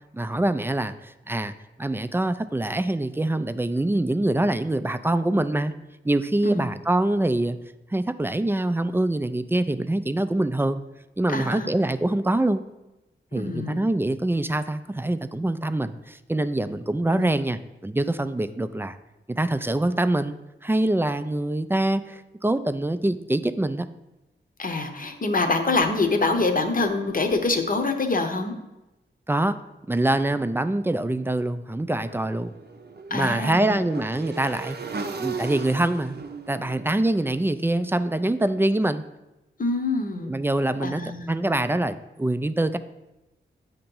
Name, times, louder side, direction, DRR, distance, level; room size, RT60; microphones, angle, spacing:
voice 1, 0.1-1.5 1.8-5.7 6.0-7.6 7.9-10.8 11.2-12.6 13.3-19.0 19.3-20.4 20.6-23.9 29.3-29.6 29.9-32.6 33.1-34.8 35.2-36.2 36.5-39.0 40.2-42.8, right 1 dB, 10° right, 11 dB, 0.3 m, -24 dB
voice 2, 11.3-11.7 13.4-13.8 17.1-17.3 24.6-28.5 33.1-33.8 39.6-40.3 40.8-41.3, left 3 dB, 45° left, 5 dB, 0.8 m, -25 dB
Motorcycle / Engine, 32.0-38.1, right 4 dB, 55° right, 0.6 m, -37 dB
8.6 x 2.9 x 5.3 m, 0.98 s
cardioid pair, 60°, 20 cm